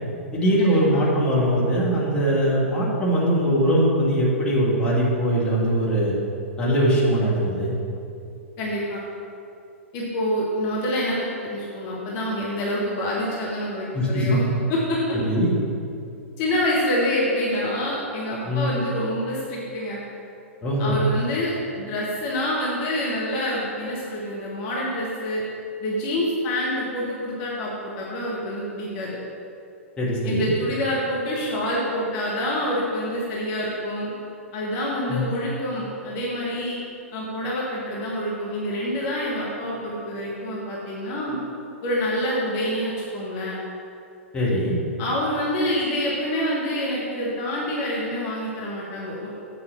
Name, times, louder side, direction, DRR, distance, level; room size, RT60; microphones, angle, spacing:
voice 1, 0.3-6.2 6.6-7.7 13.9-14.3 15.2-15.6 18.4-18.7 20.6-21.0 30.0-30.5 35.1-35.2 44.3-44.7, equal, 15° left, -6 dB, 2.1 m, -21 dB
voice 2, 8.6-9.0 9.9-14.4 14.7-15.0 16.4-20.0 20.8-25.4 25.8-29.2 30.2-34.1 34.5-36.8 37.1-41.4 41.8-43.6 45.0-49.3, left 1 dB, 35° left, -6 dB, 1.7 m, -27 dB
8.1 x 5.4 x 6.5 m, 2.6 s
figure-of-eight pair, 110°, 7 cm